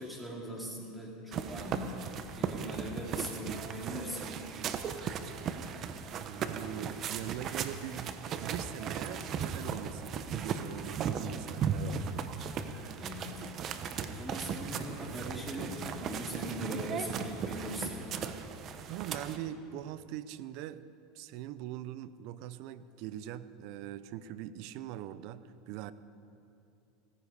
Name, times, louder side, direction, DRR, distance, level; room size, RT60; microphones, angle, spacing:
voice 1, 0.0-4.4 12.6-18.1, equal, 5° right, -3 dB, 3.9 m, -41 dB
sound 1, 1.3-19.4, right 7 dB, 40° right, 1.1 m, -37 dB
voice 2, 6.2-12.4 18.9-20.8 21.1-25.9, right 11 dB, 60° right, 15 dB, 0.7 m, -42 dB
17.0 x 15.0 x 4.9 m, 2.7 s
supercardioid pair, 105°, 0 cm